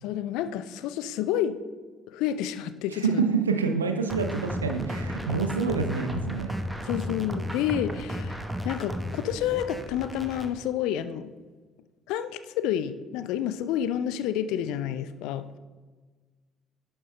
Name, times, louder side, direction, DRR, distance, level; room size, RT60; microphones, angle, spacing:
voice 1, 0.0-1.6 2.1-3.2 6.8-11.3 12.1-15.5, left 10 dB, 65° left, 13 dB, 0.4 m, -29 dB
voice 2, 2.9-6.5, right 5 dB, 85° right, 7 dB, 0.6 m, -27 dB
sound 1, 4.1-10.5, equal, 5° right, 1.0 m, -34 dB
11.0 x 6.7 x 3.2 m, 1.4 s
figure-of-eight pair, 50°, 0 cm